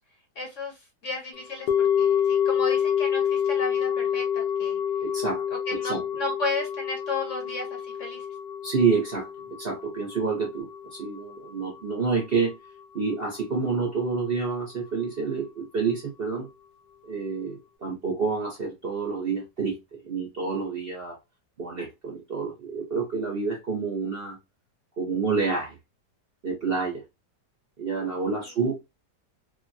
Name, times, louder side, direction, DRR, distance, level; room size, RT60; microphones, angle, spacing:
voice 1, 0.4-0.8 1.0-4.8 5.7-8.2, left 3 dB, 55° left, 1.0 m, -33 dB
sound 1, 1.7-12.0 12.2-12.3, left 8 dB, 75° left, 1.3 m, -27 dB
voice 2, 5.0-5.4 5.7-6.0 8.6-9.3 9.6-12.5 12.9-16.5 17.0-21.2 21.6-24.4 25.0-25.8 26.4-27.0 27.8-28.7, right 5 dB, 45° right, 0.8 m, -28 dB
3.2 x 2.2 x 2.5 m
omnidirectional pair, 1.8 m